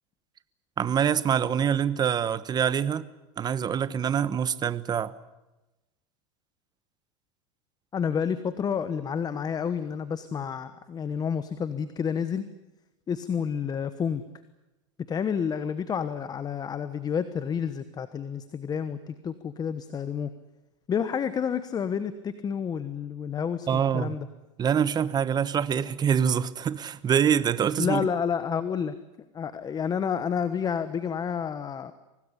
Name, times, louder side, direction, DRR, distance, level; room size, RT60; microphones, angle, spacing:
voice 1, 0.8-3.1 3.4-5.1 23.7-24.2 24.6-28.0, right 8 dB, 25° right, 1.2 m, -25 dB
voice 2, 7.9-12.5 13.1-14.2 15.1-20.3 20.9-24.3 27.8-28.9 29.3-31.9, left 7 dB, 25° left, 1.2 m, -29 dB
24.5 x 18.5 x 10.0 m
supercardioid pair, 125°, 17 cm